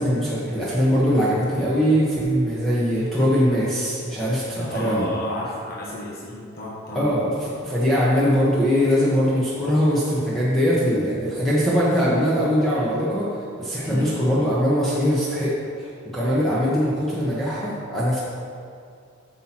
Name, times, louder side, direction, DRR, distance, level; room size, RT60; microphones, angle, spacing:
voice 1, 0.0-5.1 6.9-7.3 7.6-18.2, equal, ahead, -9 dB, 1.1 m, -21 dB
voice 2, 4.6-7.1 13.8-14.3, left 1 dB, 45° left, -5 dB, 1.2 m, -32 dB
8.4 x 5.9 x 4.4 m, 2.3 s
head